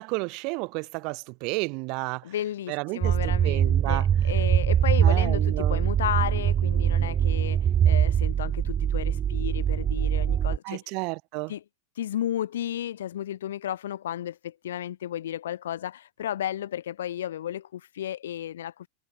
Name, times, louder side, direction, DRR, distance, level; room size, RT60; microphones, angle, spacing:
voice 1, 0.0-2.2 2.7-4.1 5.0-5.8 10.6-11.5, right 30 dB, 45° right, 1.6 m, -32 dB
voice 2, 2.2-10.8 11.5-11.6 11.9-18.9, left 11 dB, 60° left, 2.8 m, -33 dB
sound 1, 3.0-10.6, right 9 dB, 25° right, 0.5 m, -23 dB
figure-of-eight pair, 90°, 0 cm